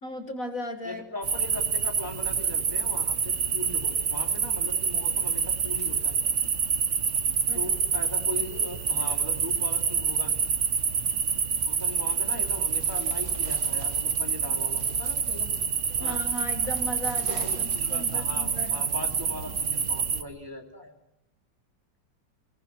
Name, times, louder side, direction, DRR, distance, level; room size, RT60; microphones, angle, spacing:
voice 1, 0.0-1.0 7.5-7.6 10.7-10.8 16.0-18.8, left 1 dB, 45° left, 4 dB, 2.1 m, -36 dB
voice 2, 0.8-6.2 7.5-10.4 11.6-15.5 16.0-16.2 17.2-20.9, left 1 dB, 10° right, 0 dB, 2.8 m, -39 dB
sound 1, 1.2-20.2, right 6 dB, 45° right, 1.3 m, -27 dB
29.5 x 18.5 x 6.1 m, 0.86 s
omnidirectional pair, 2.1 m